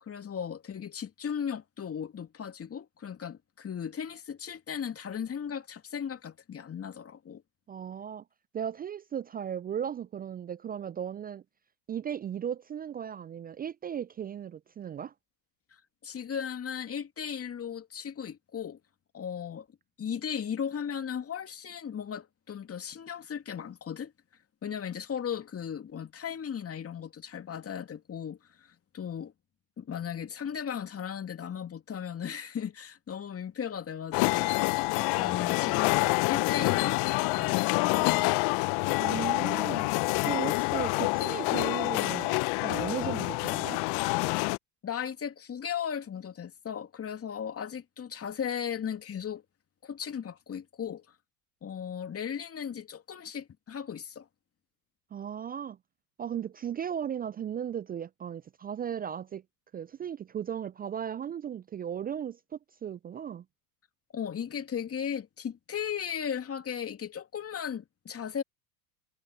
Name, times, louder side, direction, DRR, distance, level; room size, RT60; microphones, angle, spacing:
voice 1, 0.0-7.4 15.7-18.8 19.1-19.7 20.0-24.1 24.6-29.3 29.8-37.0 37.3-37.6 37.8-38.5 44.8-49.4 49.8-51.1 51.6-54.3 64.1-68.4, left 8 dB, 30° left, 2.7 m, -36 dB
voice 2, 7.7-8.2 8.5-11.4 11.9-15.1 39.0-39.9 40.2-43.8 55.1-55.8 56.2-59.4 59.7-62.4 62.8-63.4, right 9 dB, 20° right, 0.5 m, -36 dB
sound 1, 34.1-44.6, left 29 dB, 50° left, 1.0 m, -27 dB
hypercardioid pair, 75°, 49 cm